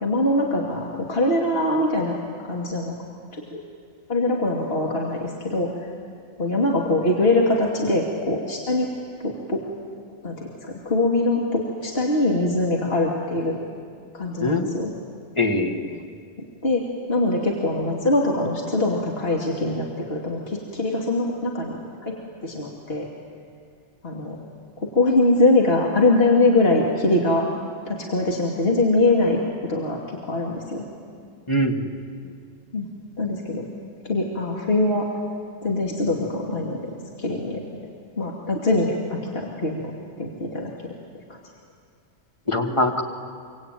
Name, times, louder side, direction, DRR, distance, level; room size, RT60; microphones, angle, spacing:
voice 1, 0.0-2.1 2.4-2.9 3.3-3.6 4.1-5.7 6.4-8.9 9.2-9.6 10.2-13.6 14.1-14.9 16.4-21.8 22.0-22.1 22.4-23.1 24.0-24.4 24.8-27.5 27.9-29.4 29.7-30.8 32.7-32.9 33.2-33.7 34.0-35.1 35.6-37.6 38.2-39.9 40.2-40.7, left 2 dB, 50° left, -2 dB, 2.7 m, -23 dB
voice 2, 14.4-14.8 15.4-16.0 31.5-31.9 42.5-43.0, left 1 dB, 25° left, 4 dB, 1.9 m, -22 dB
25.5 x 25.0 x 9.2 m, 2.2 s
omnidirectional pair, 1.3 m